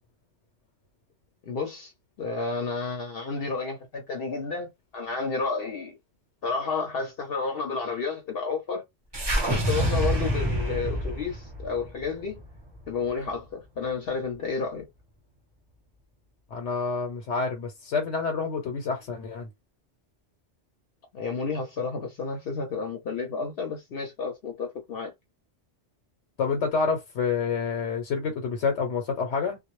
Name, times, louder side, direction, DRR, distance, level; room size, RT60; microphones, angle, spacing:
voice 1, 1.4-1.9 2.2-6.0 6.4-8.8 9.4-12.4 12.9-14.9 21.1-25.1, left 4 dB, 60° left, 0.8 m, -31 dB
sound 1, 9.1-13.4, right 1 dB, 30° right, 0.6 m, -28 dB
voice 2, 16.5-19.5 26.4-29.6, left 5 dB, 85° left, 1.0 m, -28 dB
2.2 x 2.0 x 3.0 m
omnidirectional pair, 1.2 m